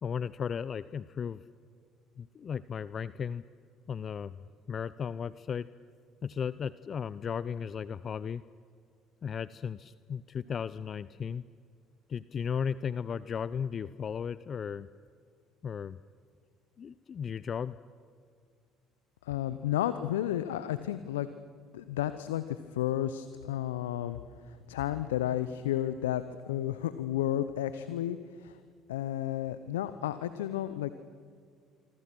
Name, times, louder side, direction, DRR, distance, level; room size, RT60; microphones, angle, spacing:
voice 1, 0.0-1.4 2.2-3.4 3.9-5.7 6.2-8.4 9.2-11.4 12.1-14.9 15.6-16.0 16.8-17.8, left 7 dB, 45° left, 17 dB, 0.6 m, -35 dB
voice 2, 19.2-21.3 21.7-24.2 24.4-28.6 28.9-30.9, left 12 dB, 80° left, 13 dB, 0.7 m, -32 dB
26.0 x 25.0 x 6.1 m, 2.2 s
hypercardioid pair, 60°, 0 cm